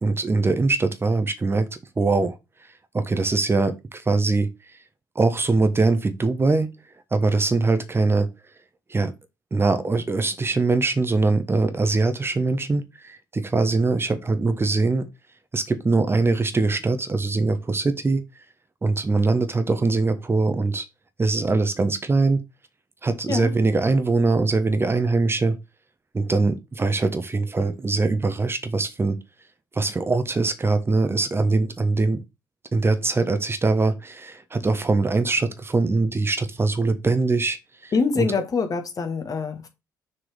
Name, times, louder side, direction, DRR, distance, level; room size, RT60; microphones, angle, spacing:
voice 1, 0.0-1.7 2.0-2.4 2.9-4.5 5.1-6.7 7.1-8.3 8.9-9.1 9.5-15.1 15.5-18.2 18.8-20.8 21.2-22.4 23.0-25.6 26.1-29.2 29.7-32.2 32.7-37.6 37.8-38.3, right 3 dB, 25° right, 1.2 m, -22 dB
voice 2, 37.9-39.7, left 4 dB, 40° left, 1.8 m, -24 dB
6.3 x 4.7 x 5.1 m
figure-of-eight pair, 45°, 10 cm